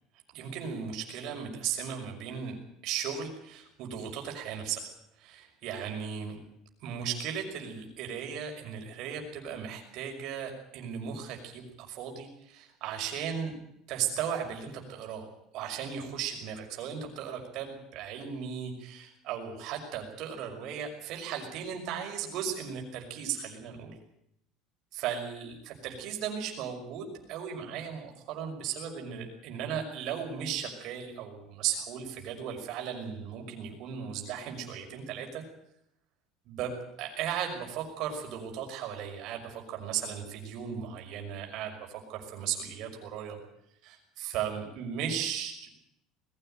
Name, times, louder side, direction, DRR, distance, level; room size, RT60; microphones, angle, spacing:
voice 1, 0.3-2.6 2.8-4.9 5.2-6.4 6.8-13.5 13.9-15.3 15.5-24.0 24.9-35.4 36.5-43.4 43.8-45.7, right 8 dB, 50° right, 3 dB, 5.9 m, -36 dB
21.0 x 16.0 x 9.2 m, 0.78 s
cardioid pair, 165°, 0 cm